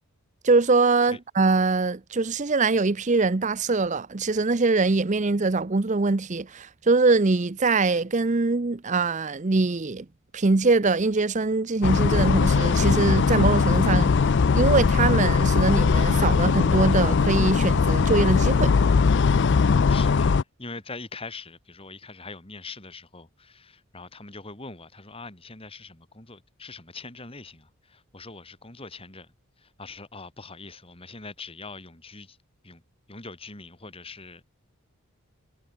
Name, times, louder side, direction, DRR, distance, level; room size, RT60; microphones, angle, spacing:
voice 1, 0.4-10.1 10.3-18.7, right 3 dB, 35° right, 0.6 m, -23 dB
sound 1, 11.8-20.4, left 5 dB, 50° left, 0.4 m, -20 dB
voice 2, 19.9-32.4 32.6-32.8 33.1-34.4, left 3 dB, 25° left, 2.9 m, -42 dB
head